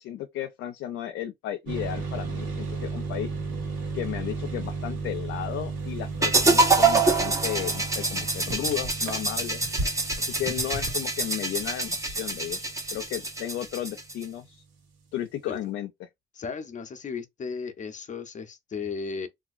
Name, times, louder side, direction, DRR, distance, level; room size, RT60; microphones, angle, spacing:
voice 1, 0.0-3.3 3.9-9.6 10.2-12.6 12.9-14.6 15.1-16.1, left 11 dB, 85° left, 0.5 m, -34 dB
sound 1, 1.7-14.1, right 4 dB, 80° right, 1.4 m, -35 dB
sound 2, 6.2-14.2, right 3 dB, 15° right, 0.8 m, -25 dB
sound 3, 8.4-11.2 11.5-12.6 12.8-13.2, right 1 dB, 65° right, 1.3 m, -35 dB
voice 2, 16.4-19.3, left 5 dB, 40° left, 0.7 m, -35 dB
2.9 x 2.5 x 2.4 m
cardioid pair, 90°, 20 cm